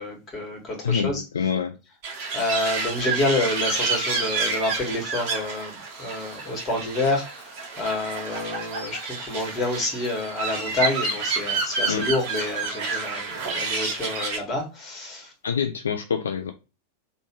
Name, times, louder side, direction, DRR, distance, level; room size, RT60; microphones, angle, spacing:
voice 1, 0.0-1.2 2.3-15.3, left 2 dB, 25° left, 1.6 m, -28 dB
voice 2, 0.8-1.7 11.9-12.1 15.4-16.5, left 7 dB, 70° left, 0.3 m, -26 dB
sound 1, 2.0-14.4, right 4 dB, 45° right, 1.3 m, -29 dB
3.4 x 2.6 x 2.9 m
figure-of-eight pair, 90°, 0 cm